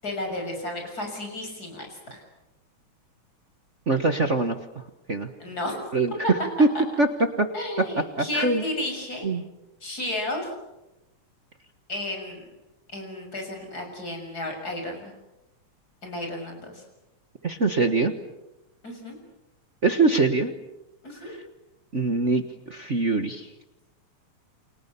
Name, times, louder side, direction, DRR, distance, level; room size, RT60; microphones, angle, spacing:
voice 1, 0.0-2.2 5.4-5.8 6.7-6.8 7.5-9.3 9.8-10.5 11.9-12.5 12.9-15.1 16.0-16.8 18.8-19.2 21.0-21.3, left 1 dB, 30° left, 3 dB, 7.1 m, -33 dB
voice 2, 3.9-4.6 5.1-5.3 5.9-6.1 6.6-6.7 7.0-7.1 7.4-7.5 8.2-8.6 9.2-9.4 17.4-18.1 19.8-20.5 21.2-21.4 21.9-22.4 22.7-23.5, right 3 dB, 50° right, 6 dB, 0.9 m, -22 dB
29.5 x 26.5 x 7.0 m, 0.95 s
omnidirectional pair, 3.4 m